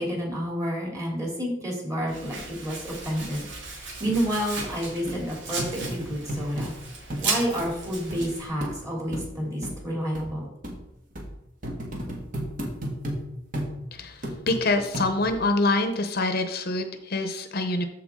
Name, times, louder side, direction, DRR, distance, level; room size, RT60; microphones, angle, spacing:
voice 1, 0.0-6.7 7.2-10.5, equal, 20° right, -2 dB, 2.9 m, -30 dB
Domestic sounds home sounds, 2.1-8.5, right 4 dB, 80° right, 2.3 m, -35 dB
sound 1, 4.1-4.2 4.6-4.7 5.1-5.2 5.6-6.7 7.1-7.3 7.6-7.7 8.1-8.2 8.6-8.7 9.1-9.3 9.6-9.8 10.1-10.3 10.6-10.8 11.2-11.3 11.6-13.2 13.5-13.7 14.2-14.6 14.9-15.4 15.9-16.0, equal, 50° right, 1.7 m, -33 dB
voice 2, 13.9-17.9, left 2 dB, 55° left, 7 dB, 0.8 m, -26 dB
13.5 x 4.7 x 3.7 m, 0.82 s
head